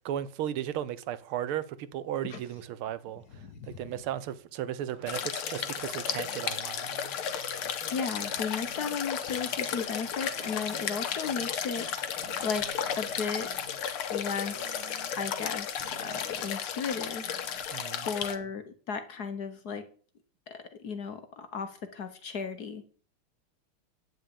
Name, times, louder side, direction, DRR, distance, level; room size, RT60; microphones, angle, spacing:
voice 1, 0.0-7.0 17.7-18.1, right 11 dB, 80° right, 1.6 m, -35 dB
voice 2, 3.3-3.8 7.9-13.5 14.1-17.3 18.0-19.9 20.5-22.9, left 5 dB, 55° left, 1.4 m, -35 dB
sound 1, 4.8-15.5 15.8-17.7, right 5 dB, 60° right, 1.9 m, -52 dB
sound 2, 5.1-18.4, left 8 dB, 75° left, 2.0 m, -34 dB
9.5 x 6.3 x 8.7 m
omnidirectional pair, 2.4 m